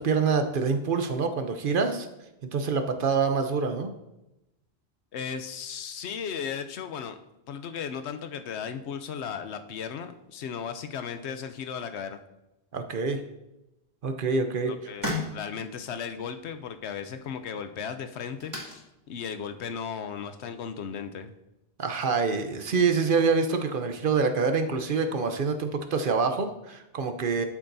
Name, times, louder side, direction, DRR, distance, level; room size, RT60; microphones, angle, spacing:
voice 1, 0.0-2.1 2.5-3.9 12.7-13.2 14.0-14.7 21.8-27.4, right 5 dB, 55° right, 7 dB, 0.9 m, -26 dB
voice 2, 5.1-7.2 7.5-12.2 14.7-21.3, left 7 dB, 90° left, 9 dB, 1.0 m, -36 dB
sound 1, 14.1-21.4, left 1 dB, 30° right, 2.5 m, -41 dB
12.5 x 7.2 x 2.7 m, 0.93 s
omnidirectional pair, 1.1 m